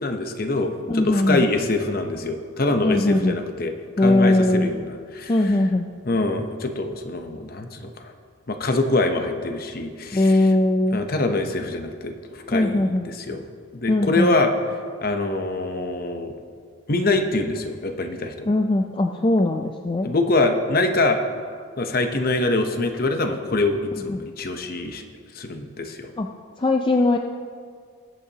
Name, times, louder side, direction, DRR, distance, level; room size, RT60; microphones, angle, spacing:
voice 1, 0.0-5.6 6.0-8.1 8.5-10.5 10.9-13.4 13.7-14.5 15.0-16.3 16.9-18.5 20.0-21.2 21.8-25.1 25.3-26.1, left 2 dB, 45° left, 6 dB, 0.8 m, -24 dB
voice 2, 0.9-1.4 2.8-3.4 4.0-4.7 5.3-5.9 10.1-11.0 12.5-13.1 13.9-14.3 18.5-20.1 24.1-24.2 26.2-26.3 26.6-27.2, left 2 dB, 25° left, 3 dB, 0.3 m, -20 dB
20.0 x 8.2 x 2.9 m, 2.1 s
head